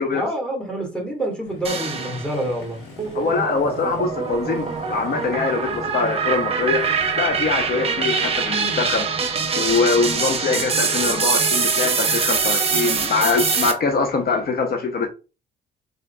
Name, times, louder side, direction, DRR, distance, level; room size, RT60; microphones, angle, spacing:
voice 1, 0.1-2.8, right 1 dB, 5° left, 1.5 m, -27 dB
Motorcycle, 1.4-14.5, left 3 dB, 90° left, 1.2 m, -43 dB
sound 1, 1.6-2.5 3.0-13.7, right 5 dB, 30° right, 0.8 m, -23 dB
voice 2, 3.1-6.9 7.2-9.1 9.5-15.1, left 4 dB, 50° left, 0.6 m, -23 dB
3.8 x 3.6 x 2.2 m
cardioid pair, 90°, 20 cm